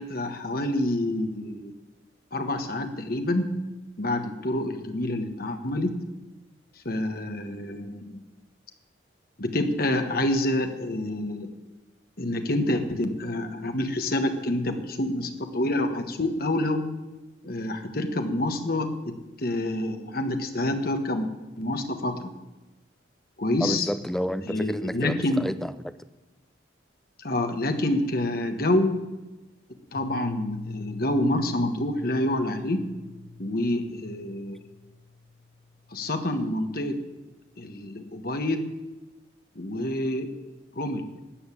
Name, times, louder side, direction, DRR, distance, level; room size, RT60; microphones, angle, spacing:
voice 1, 0.0-1.7 2.3-3.6 4.0-6.0 6.8-8.2 9.4-11.5 12.2-16.9 17.4-21.3 21.6-22.3 23.4-23.9 24.4-25.5 27.2-29.0 29.9-32.9 33.4-34.6 35.9-37.0 37.6-38.7 39.5-40.3 40.7-41.0, left 1 dB, 50° left, 1.4 m, -27 dB
voice 2, 23.6-25.9, equal, ahead, 0.4 m, -30 dB
Piano, 29.9-35.6, left 4 dB, 30° right, 1.6 m, -42 dB
13.0 x 8.0 x 8.5 m
head